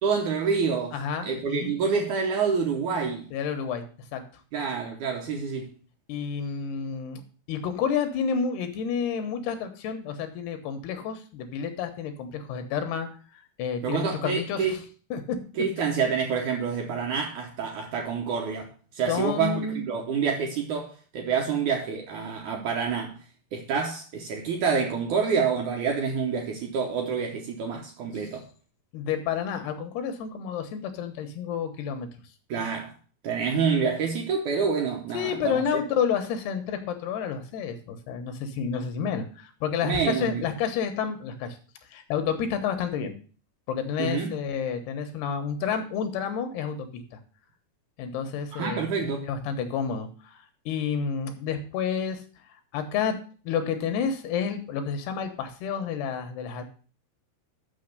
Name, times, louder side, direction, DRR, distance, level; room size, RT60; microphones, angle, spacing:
voice 1, 0.0-1.0 1.2-3.3 4.5-5.7 13.8-14.7 15.6-23.2 23.5-28.5 32.5-32.9 33.2-35.8 39.8-40.5 44.0-44.4 48.5-49.3, right 6 dB, 70° right, 2.0 m, -27 dB
voice 2, 0.9-1.8 3.3-3.8 4.1-4.2 5.3-5.4 6.1-7.2 7.5-13.1 13.3-14.8 15.1-15.4 19.1-19.9 28.9-32.1 35.1-41.6 41.9-43.2 43.7-47.0 48.0-50.4 50.7-52.2 52.7-53.2 53.4-56.6, left 7 dB, 80° left, 3.2 m, -30 dB
6.6 x 6.5 x 6.5 m
omnidirectional pair, 4.6 m